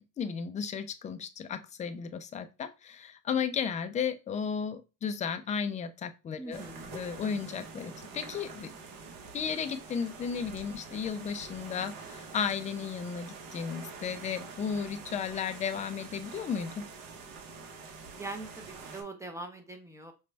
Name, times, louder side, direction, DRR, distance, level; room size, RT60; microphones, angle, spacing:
voice 1, 0.0-6.6 6.9-8.7 9.3-16.9, left 6 dB, 20° left, 9 dB, 0.3 m, -34 dB
voice 2, 6.4-7.0 18.2-20.1, right 2 dB, 5° right, 5 dB, 0.8 m, -42 dB
sound 1, 6.5-19.0, right 4 dB, 50° right, 1.1 m, -46 dB
5.1 x 2.2 x 3.3 m, 0.29 s
supercardioid pair, 120°, 42 cm